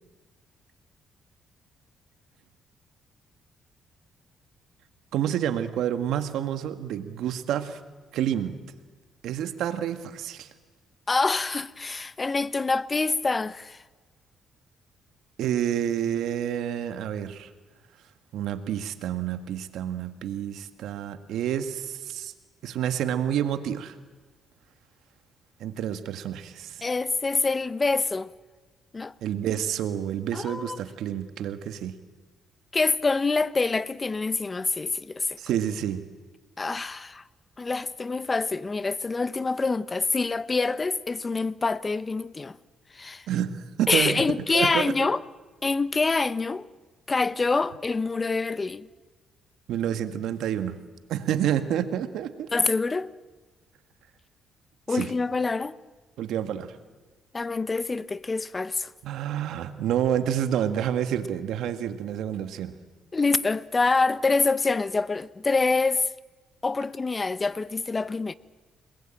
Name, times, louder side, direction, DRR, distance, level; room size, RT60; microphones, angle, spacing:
voice 1, 5.1-7.8 8.1-8.6 9.2-10.5 15.4-17.5 18.3-22.3 22.6-24.0 25.6-26.8 29.2-32.0 35.4-36.0 43.3-44.2 44.5-44.9 49.7-50.8 51.1-52.5 54.9-55.1 56.2-56.8 59.0-62.8, right 10 dB, 80° right, 1.7 m, -29 dB
voice 2, 11.1-13.8 26.8-28.3 28.9-29.1 30.3-30.8 32.7-35.4 36.6-37.2 37.6-42.6 42.9-43.3 43.9-45.2 45.6-46.7 47.1-48.9 52.5-53.1 54.9-55.8 57.3-58.9 63.1-66.1 66.6-68.3, left 3 dB, 25° left, 0.8 m, -26 dB
29.5 x 20.0 x 9.0 m
cardioid pair, 90°, 0 cm